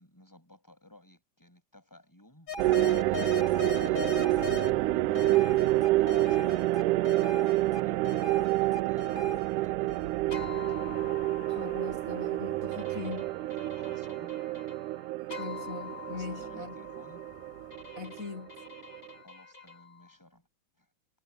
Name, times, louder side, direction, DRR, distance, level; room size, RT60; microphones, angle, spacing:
voice 1, 0.0-10.0 10.3-10.8 13.7-14.4 16.1-17.3 19.2-20.5 20.8-20.9, left 1 dB, 5° left, 7.7 m, -57 dB
sound 1, 2.5-4.7 5.2-20.1, left 4 dB, 25° left, 7.8 m, -42 dB
sound 2, 2.6-19.1, right 17 dB, 85° right, 1.8 m, -28 dB
voice 2, 11.5-13.3 15.4-16.7 17.9-18.5, left 5 dB, 70° left, 0.8 m, -41 dB
omnidirectional pair, 4.3 m